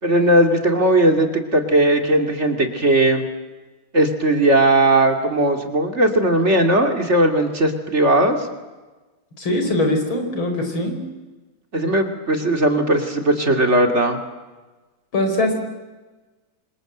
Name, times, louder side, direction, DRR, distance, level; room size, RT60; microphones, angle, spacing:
voice 1, 0.0-3.3 3.9-8.4 11.7-14.2, right 1 dB, 35° right, 5 dB, 2.9 m, -18 dB
voice 2, 9.4-11.0 15.1-15.5, left 1 dB, 90° left, 5 dB, 5.6 m, -21 dB
28.5 x 26.0 x 8.0 m, 1.2 s
omnidirectional pair, 2.1 m